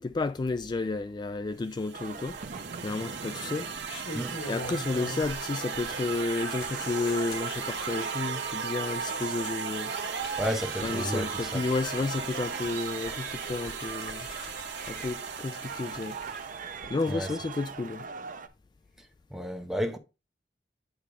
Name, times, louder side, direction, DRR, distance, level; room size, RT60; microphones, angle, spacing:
voice 1, 0.0-2.4 2.8-3.7 4.5-9.9 10.8-14.3 14.9-16.2 16.9-18.1, left 3 dB, 25° left, 0.3 m, -32 dB
sound 1, 1.7-16.7, right 6 dB, 75° right, 1.5 m, -38 dB
sound 2, 1.9-18.5, right 5 dB, 50° right, 0.6 m, -39 dB
sound 3, 2.1-2.8 3.6-5.4 5.7-16.4 16.7-16.9, left 1 dB, 60° left, 2.6 m, -44 dB
voice 2, 10.4-11.6 17.1-17.3 19.3-20.0, equal, ahead, 0.8 m, -32 dB
8.6 x 3.4 x 4.8 m
head